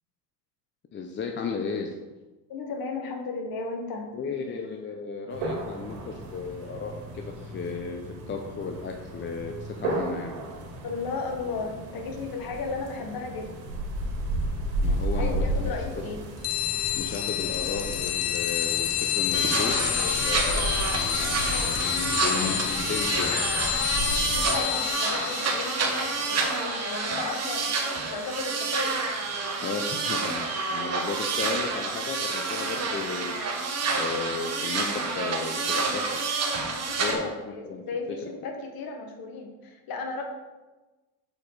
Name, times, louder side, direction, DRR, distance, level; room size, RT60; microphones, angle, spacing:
voice 1, 0.9-1.9 4.1-8.0 8.3-10.4 14.8-16.0 17.0-23.4 29.6-33.4 34.0-36.2 37.0-37.3 37.6-37.8, left 4 dB, 25° left, 3 dB, 0.5 m, -34 dB
voice 2, 2.5-4.0 10.8-13.5 15.2-16.2 24.3-28.9 36.9-40.2, left 4 dB, 45° left, 2 dB, 1.6 m, -35 dB
sound 1, 5.3-24.6, right 1 dB, 85° right, 2.0 m, -34 dB
sound 2, 16.4-28.5, left 12 dB, 75° left, 0.8 m, -29 dB
sound 3, 19.3-37.2, right 4 dB, 30° right, 1.3 m, -29 dB
6.6 x 4.8 x 4.1 m, 1.2 s
supercardioid pair, 95°, 49 cm